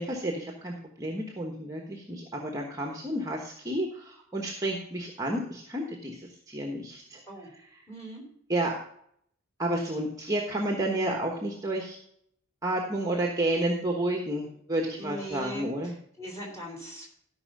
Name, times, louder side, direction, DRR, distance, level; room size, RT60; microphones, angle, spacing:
voice 1, 0.0-7.2 8.5-8.7 9.6-12.0 12.6-15.9, right 1 dB, 15° right, 1 dB, 1.2 m, -31 dB
voice 2, 7.9-8.2 14.9-17.1, equal, 15° left, -1 dB, 3.6 m, -40 dB
13.0 x 5.6 x 5.3 m, 0.67 s
head